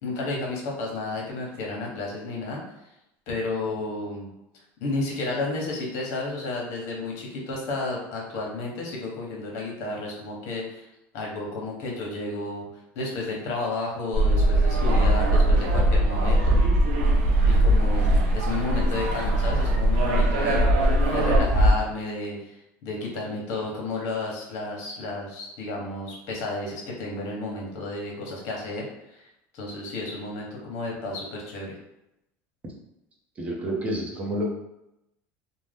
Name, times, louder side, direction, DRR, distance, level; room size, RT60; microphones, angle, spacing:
voice 1, 0.0-2.6 3.3-4.3 4.8-10.9 11.1-12.7 12.9-16.6 17.4-20.7 21.1-29.2 29.5-31.8, left 2 dB, 60° left, -2 dB, 1.0 m, -32 dB
sound 1, 14.1-21.7, right 1 dB, 80° right, 0.6 m, -20 dB
voice 2, 33.4-34.4, right 1 dB, 25° right, -1 dB, 0.7 m, -29 dB
2.7 x 2.1 x 3.4 m, 0.84 s
cardioid pair, 150°, 6 cm